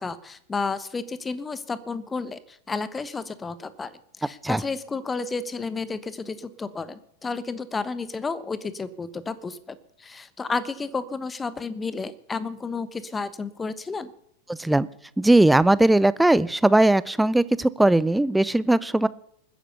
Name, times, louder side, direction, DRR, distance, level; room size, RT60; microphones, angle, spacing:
voice 1, 0.0-14.1, left 4 dB, 15° left, 16 dB, 1.0 m, -32 dB
voice 2, 15.2-19.1, right 1 dB, 5° right, 19 dB, 0.5 m, -19 dB
20.5 x 10.0 x 6.9 m, 0.74 s
figure-of-eight pair, 90°, 0 cm